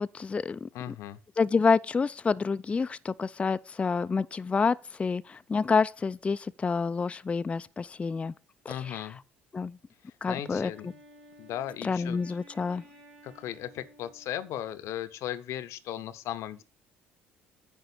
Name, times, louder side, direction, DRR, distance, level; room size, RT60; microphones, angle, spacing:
voice 1, 0.0-0.9 1.4-8.3 8.9-9.0 9.5-9.7 10.2-10.7 11.8-12.8, left 5 dB, 20° left, 0.3 m, -28 dB
voice 2, 0.7-1.2 8.7-9.2 10.0-11.0 11.4-12.4 13.2-16.6, left 11 dB, 60° left, 0.7 m, -37 dB
Wind instrument woodwind instrument, 10.2-14.9, equal, 85° right, 2.0 m, -55 dB
9.8 x 3.8 x 7.0 m
figure-of-eight pair, 50°, 6 cm